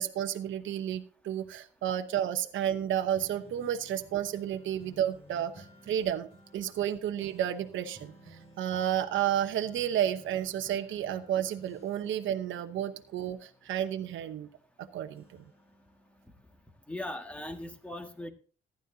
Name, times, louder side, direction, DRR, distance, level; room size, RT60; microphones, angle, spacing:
voice 1, 0.0-6.3 6.5-14.5 14.8-15.2, right 10 dB, 75° right, 7 dB, 1.0 m, -31 dB
sound 1, 3.1-14.8 15.1-17.0 17.5-17.6, equal, 30° left, 3.1 m, -57 dB
voice 2, 16.9-18.3, left 1 dB, 5° left, 5 dB, 1.9 m, -39 dB
15.0 x 11.0 x 2.8 m, 0.39 s
cardioid pair, 90°, 20 cm